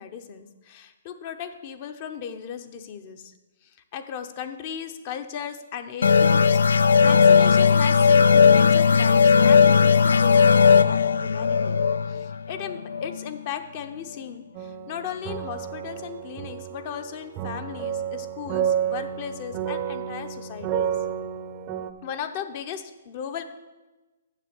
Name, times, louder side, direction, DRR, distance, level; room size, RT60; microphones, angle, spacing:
voice 1, 0.0-3.3 3.6-11.8 12.1-20.9 22.0-23.4, left 8 dB, 40° left, 8 dB, 0.7 m, -37 dB
sound 1, 6.0-13.3, left 6 dB, 85° left, 0.3 m, -17 dB
sound 2, 14.5-21.9, right 9 dB, 30° right, 0.6 m, -30 dB
7.4 x 6.4 x 6.9 m, 1.1 s
hypercardioid pair, 140°, 0 cm